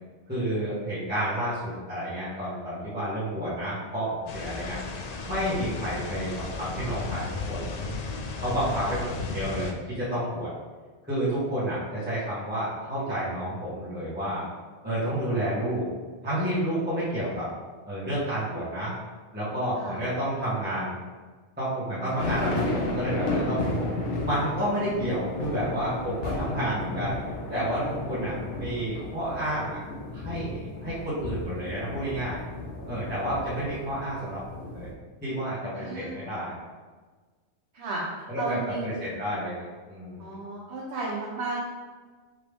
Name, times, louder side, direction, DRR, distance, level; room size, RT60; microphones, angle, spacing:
voice 1, 0.3-4.8 5.3-7.7 8.4-10.5 11.0-14.4 14.8-15.9 16.2-17.5 17.9-18.9 19.3-20.9 21.6-23.9 24.2-27.1 27.5-29.8 30.1-32.4 32.9-34.9 35.2-36.5 38.3-40.3, right 1 dB, 10° right, -12 dB, 1.3 m, -30 dB
sound 1, 4.3-9.7, left 3 dB, 65° left, 0.4 m, -35 dB
voice 2, 8.7-9.0 19.7-20.0 35.7-36.3 37.7-38.0 38.4-38.9 40.2-41.6, right 3 dB, 65° right, -6 dB, 1.1 m, -34 dB
sound 2, 22.2-34.9, left 2 dB, 80° left, 1.0 m, -33 dB
4.8 x 3.0 x 3.4 m, 1.4 s
omnidirectional pair, 1.2 m